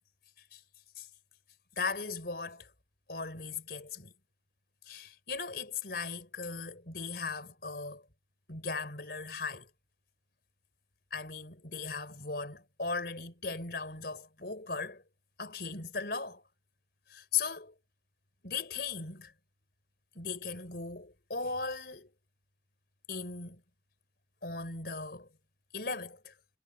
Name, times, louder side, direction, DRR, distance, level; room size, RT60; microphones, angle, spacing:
voice 1, 1.8-2.7 3.1-4.1 4.8-8.0 8.5-9.7 11.1-15.0 15.4-16.4 17.1-17.7 18.4-19.3 20.1-22.1 23.1-23.6 24.4-25.3 25.7-26.3, left 4 dB, 60° left, 4.7 m, -38 dB
head